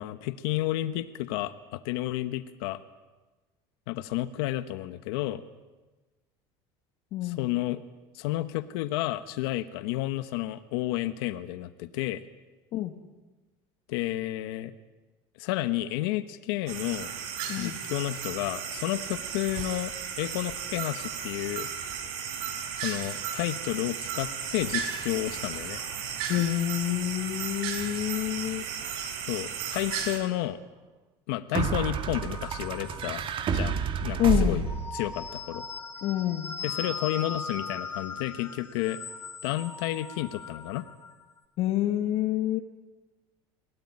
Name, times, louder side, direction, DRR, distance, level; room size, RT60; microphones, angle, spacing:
voice 1, 0.0-2.8 3.9-5.4 7.2-7.8 8.1-12.2 13.9-14.7 15.4-17.1 17.6-21.7 22.8-25.8 29.3-30.6 31.3-33.2 33.5-33.8 34.0-34.6 34.9-35.6 36.6-39.0 39.4-40.8, left 15 dB, 80° left, 12 dB, 1.2 m, -31 dB
voice 2, 7.1-7.5 12.7-12.9 17.5-17.8 26.3-28.6 34.2-34.7 36.0-36.6 41.6-42.6, left 13 dB, 55° left, 6 dB, 1.8 m, -27 dB
sound 1, 16.7-30.2, right 7 dB, 75° right, 4.7 m, -35 dB
sound 2, 29.8-29.9 31.5-35.1, right 5 dB, 45° right, 2.4 m, -29 dB
sound 3, 32.1-33.6 34.5-41.1, left 4 dB, 20° left, 4.2 m, -39 dB
23.0 x 17.5 x 9.8 m, 1.2 s
supercardioid pair, 115°, 13 cm